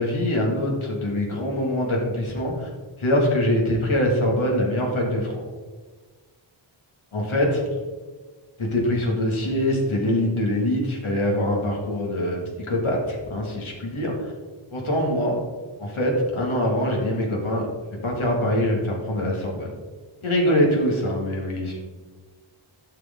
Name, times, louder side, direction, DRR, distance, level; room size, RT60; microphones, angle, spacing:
voice 1, 0.0-2.7 3.0-5.4 7.1-7.6 8.6-12.4 12.7-14.3 14.7-15.4 15.8-17.7 18.0-19.7 20.2-21.8, left 1 dB, 85° left, -1 dB, 2.4 m, -23 dB
11.0 x 6.8 x 3.9 m, 1.4 s
wide cardioid pair, 80°, 48 cm